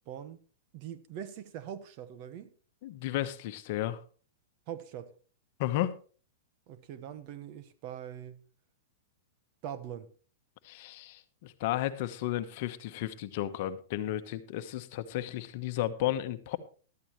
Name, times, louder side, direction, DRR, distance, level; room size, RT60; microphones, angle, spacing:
voice 1, 0.1-0.4 0.7-2.5 4.7-5.1 6.7-8.4 9.6-10.1, right 9 dB, 45° right, 1.2 m, -42 dB
voice 2, 2.8-4.0 5.6-6.0 10.6-16.6, left 13 dB, 50° left, 1.1 m, -33 dB
14.0 x 12.5 x 3.1 m
hypercardioid pair, 145°, 0 cm